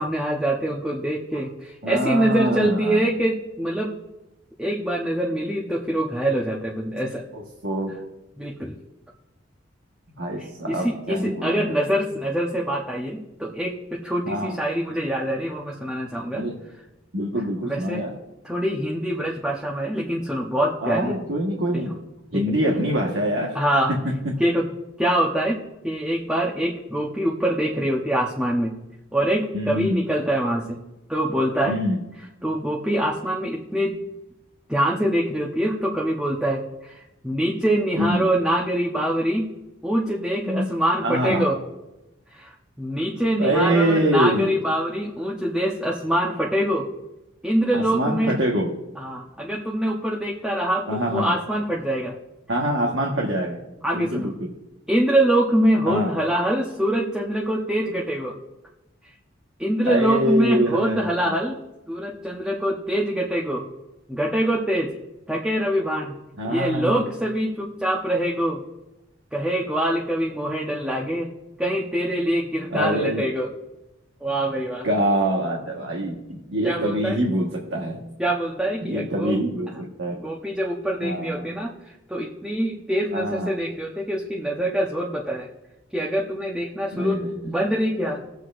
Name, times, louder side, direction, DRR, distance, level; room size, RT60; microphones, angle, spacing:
voice 1, 0.0-3.9 4.6-7.2 8.4-8.7 10.7-16.4 17.6-18.0 18.4-21.2 21.7-21.8 22.3-22.4 23.5-23.9 24.4-24.7 25.0-25.6 25.8-28.7 29.1-30.8 31.1-31.8 32.4-33.9 34.7-39.4 39.8-41.6 42.3-46.9 47.4-48.4 49.0-52.1 53.8-54.3 54.9-58.4 59.6-61.6 61.9-63.7 64.1-64.9 65.3-66.1 66.5-68.6 69.3-71.3 71.6-73.5 74.2-74.9 76.6-77.2 78.2-79.4 80.1-81.7 82.1-85.5 85.9-88.2, right 1 dB, 5° right, -3 dB, 0.9 m, -24 dB
voice 2, 1.8-3.1 7.3-8.0 10.2-11.7 14.2-14.5 16.3-16.6 17.1-18.1 20.8-21.9 22.3-23.5 23.9-24.3 29.5-30.0 31.7-32.0 38.0-38.3 40.4-40.7 41.0-41.5 43.4-44.5 47.7-48.7 50.9-51.4 52.5-53.6 53.9-54.3 55.9-56.2 59.9-61.3 66.4-67.0 72.7-73.2 74.8-78.0 78.8-80.2 81.0-81.5 83.1-83.5 86.9-87.6, right 1 dB, 75° right, -1 dB, 1.4 m, -25 dB
20.0 x 7.9 x 2.5 m, 0.96 s
head